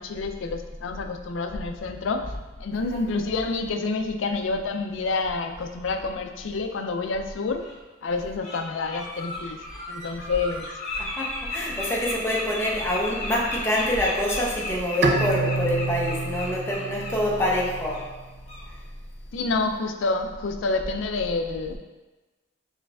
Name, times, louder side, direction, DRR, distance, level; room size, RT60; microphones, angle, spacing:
voice 1, 0.0-2.3 2.6-7.6 8.0-9.6 9.9-10.7 19.3-21.8, left 3 dB, 75° left, 6 dB, 0.4 m, -28 dB
voice 2, 2.7-3.0 11.0-18.1 18.7-18.8, left 1 dB, 15° left, -4 dB, 0.7 m, -26 dB
Bird, 6.8-6.9 7.6-7.7 8.2-8.6 8.8-17.6 17.9-18.1 18.5-18.6, left 2 dB, 35° left, 1.5 m, -35 dB
Bowed string instrument, 15.0-18.2, right 3 dB, 60° right, 0.4 m, -28 dB
6.3 x 3.2 x 2.4 m, 1.2 s
head